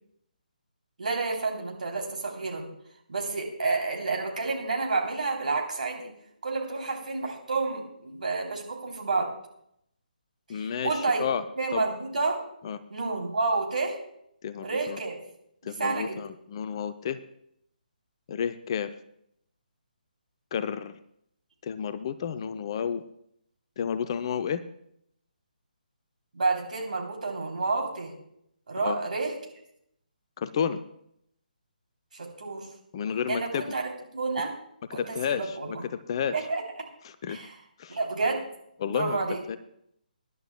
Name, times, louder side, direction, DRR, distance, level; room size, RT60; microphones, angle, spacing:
voice 1, 1.0-2.7 3.1-6.1 6.4-9.3 10.5-11.2 11.6-12.4 12.9-14.0 14.6-15.1 15.6-16.2 26.3-28.1 28.7-29.3 32.1-32.7 33.3-33.8 34.1-34.5 34.9-35.8 36.3-36.6 37.3-37.6 37.9-38.5 38.9-39.4, right 3 dB, 60° right, 1 dB, 3.2 m, -29 dB
voice 2, 10.5-11.4 11.7-11.8 12.6-12.8 14.4-15.0 15.7-17.2 18.3-18.9 20.5-20.9 21.6-23.0 23.8-24.6 28.8-29.0 30.4-30.8 32.9-33.6 34.9-35.8 36.1-36.4 37.0-37.4 37.8-38.0 38.8-39.2 39.5-39.6, left 8 dB, 35° left, 11 dB, 0.5 m, -31 dB
24.5 x 11.0 x 2.2 m, 0.72 s
figure-of-eight pair, 145°, 5 cm